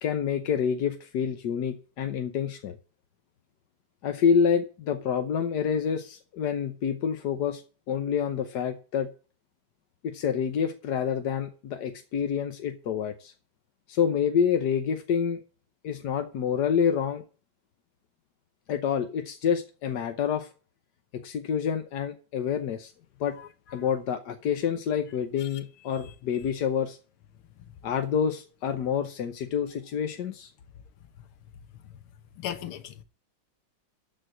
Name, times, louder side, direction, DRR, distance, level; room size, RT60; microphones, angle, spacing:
voice 1, 0.0-2.8 4.0-7.6 7.9-9.1 10.0-13.3 13.9-15.4 15.8-17.2 18.7-20.5 21.1-22.9 23.2-23.4 23.7-27.0 27.8-30.5, left 7 dB, 60° left, 1.4 m, -27 dB
voice 2, 32.4-33.0, left 10 dB, 80° left, 1.9 m, -37 dB
13.0 x 4.7 x 7.6 m
omnidirectional pair, 2.3 m